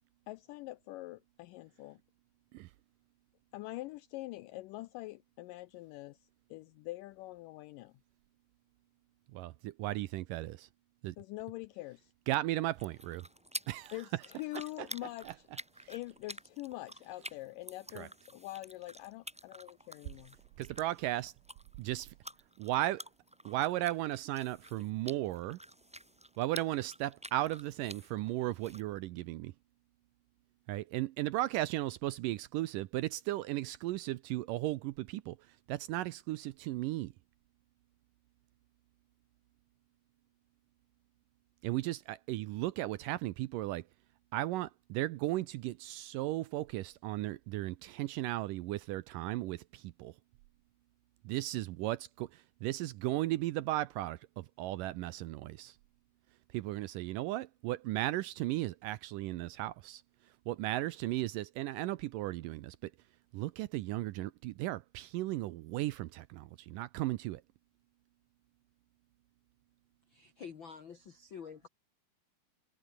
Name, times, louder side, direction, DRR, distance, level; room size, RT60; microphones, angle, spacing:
voice 1, 0.3-2.0 3.5-8.0 11.2-12.1 13.9-15.4 15.9-20.4, left 18 dB, 85° left, 1.9 m, -44 dB
voice 2, 9.3-10.7 11.0-11.2 12.3-13.3 13.7-14.2 15.2-15.3 15.8-15.9 18.0-18.1 20.6-21.3 21.8-22.1 22.6-23.1 23.5-25.6 26.4-29.5 30.7-37.1 41.6-43.9 44.3-50.2 51.2-55.8 56.5-62.9 63.3-67.4, right 16 dB, 75° right, 2.1 m, -36 dB
sound 1, 12.6-28.8, equal, 10° right, 0.4 m, -50 dB
voice 3, 70.1-71.7, left 6 dB, 65° left, 1.2 m, -48 dB
omnidirectional pair, 4.3 m